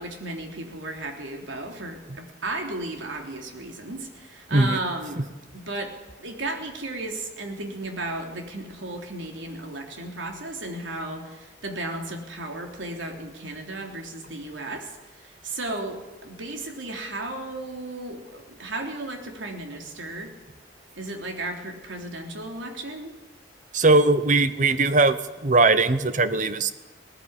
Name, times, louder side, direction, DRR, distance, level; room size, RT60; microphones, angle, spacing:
voice 1, 0.0-5.9 6.2-20.3 21.0-23.2, right 2 dB, 80° right, 2 dB, 3.5 m, -34 dB
voice 2, 23.7-25.2 25.4-26.7, right 3 dB, 40° right, 12 dB, 1.0 m, -19 dB
19.0 x 14.5 x 9.9 m, 1.1 s
head